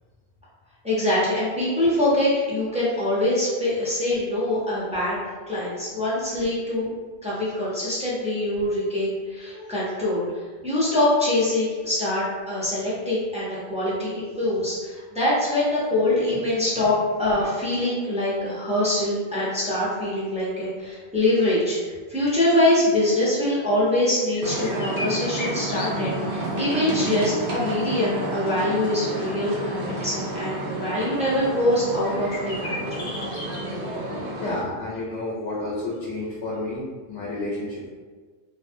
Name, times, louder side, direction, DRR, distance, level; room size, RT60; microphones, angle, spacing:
voice 1, 0.8-5.2 5.5-6.9 7.2-21.8 22.1-32.8, left 1 dB, 10° right, -9 dB, 0.5 m, -24 dB
sound 1, 24.3-26.4 26.7-26.8 32.0-33.6, left 1 dB, 60° left, 0.6 m, -35 dB
sound 2, 24.4-34.6, right 1 dB, 60° right, 0.7 m, -30 dB
voice 2, 34.4-37.9, left 2 dB, 90° left, -5 dB, 0.9 m, -30 dB
2.4 x 2.0 x 2.5 m, 1.5 s
omnidirectional pair, 1.1 m